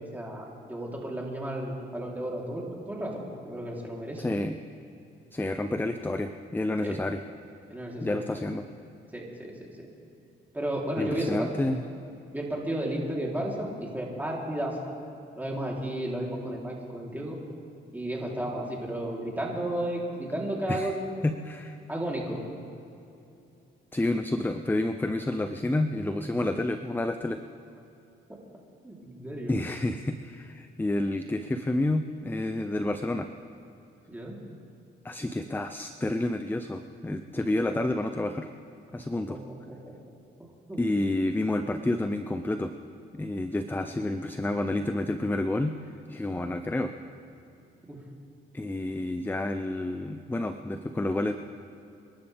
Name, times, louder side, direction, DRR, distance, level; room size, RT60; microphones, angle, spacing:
voice 1, 0.1-4.3 6.8-7.0 7.7-8.4 9.1-9.7 10.5-11.5 12.3-14.9 15.4-17.4 17.9-21.0 21.9-22.4 28.3-28.4 28.8-29.7 34.1-34.4 39.3-39.4 39.7-39.9 40.7-40.8 47.9-48.0, right 1 dB, 10° right, -3 dB, 3.5 m, -33 dB
voice 2, 4.2-4.6 5.3-7.2 8.0-8.6 11.0-11.8 20.7-21.0 21.2-21.8 23.9-27.4 29.5-33.3 35.0-38.5 38.9-39.4 40.8-42.7 43.1-45.7 46.1-46.9 48.5-51.3, left 1 dB, 10° left, 8 dB, 0.6 m, -29 dB
28.5 x 12.0 x 3.5 m, 2.7 s
cardioid pair, 90°, 20 cm